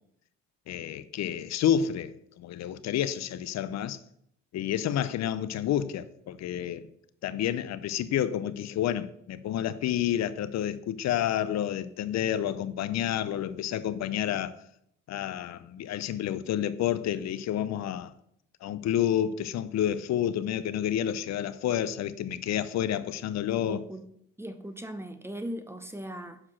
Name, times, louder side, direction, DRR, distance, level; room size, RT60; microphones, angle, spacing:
voice 1, 0.7-4.0 4.5-6.9 7.2-14.6 15.1-18.1 18.6-23.8, left 10 dB, 60° left, 0.6 m, -29 dB
voice 2, 23.6-24.0 24.4-26.4, equal, 10° right, 0.7 m, -38 dB
5.8 x 4.8 x 6.2 m
cardioid pair, 90°, 30 cm